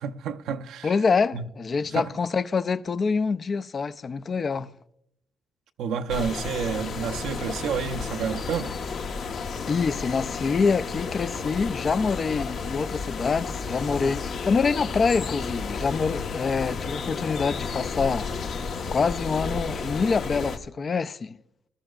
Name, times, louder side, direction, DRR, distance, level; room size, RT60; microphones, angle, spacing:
voice 1, 0.0-0.9 1.3-1.5 1.9-2.1 4.6-4.7 5.8-8.7 17.2-17.3, right 7 dB, 85° right, 0.7 m, -30 dB
voice 2, 0.8-4.7 9.7-18.3 18.9-21.4, left 5 dB, 40° left, 0.5 m, -26 dB
sound 1, 6.1-20.6, left 4 dB, 65° left, 1.1 m, -32 dB
20.5 x 13.0 x 2.4 m
cardioid pair, 90°, 0 cm